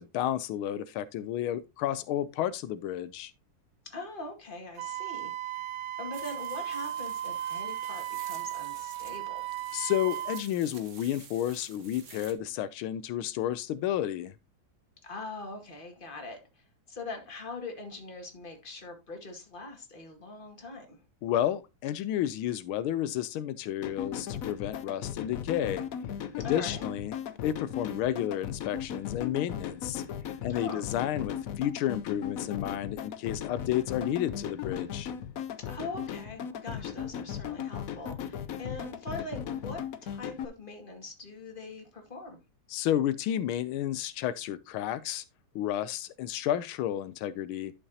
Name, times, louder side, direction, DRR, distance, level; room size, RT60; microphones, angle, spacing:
voice 1, 0.0-3.3 9.7-14.3 21.2-25.9 26.4-27.1 27.4-30.0 30.4-35.1 42.7-45.2 45.5-47.7, left 11 dB, 90° left, 1.5 m, -31 dB
voice 2, 3.8-5.6 6.0-9.6 15.0-21.0 26.4-26.9 30.5-30.8 35.6-42.4, left 2 dB, 25° left, 2.1 m, -42 dB
Wind instrument woodwind instrument, 4.8-10.4, right 12 dB, 85° right, 1.5 m, -36 dB
sound 1, 6.1-12.3, right 6 dB, 45° right, 1.2 m, -51 dB
sound 2, 23.8-40.4, left 9 dB, 65° left, 0.9 m, -37 dB
11.0 x 6.8 x 2.8 m
omnidirectional pair, 2.2 m